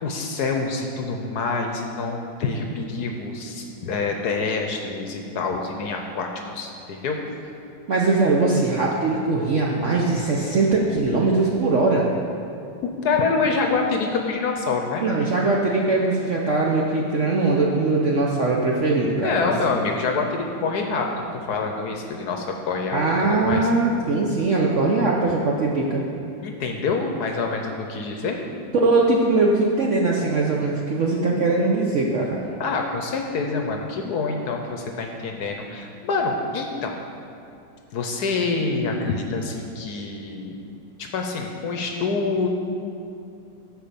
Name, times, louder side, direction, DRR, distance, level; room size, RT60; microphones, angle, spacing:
voice 1, 0.0-7.2 12.8-15.0 19.2-23.0 23.3-23.7 26.4-28.4 32.6-37.0 37.9-40.6 41.0-42.5, left 4 dB, 65° left, 3 dB, 1.1 m, -26 dB
voice 2, 7.9-12.0 15.0-19.5 22.9-26.0 28.7-32.4, right 3 dB, 60° right, -2 dB, 0.8 m, -21 dB
10.5 x 4.6 x 6.9 m, 2.6 s
omnidirectional pair, 2.1 m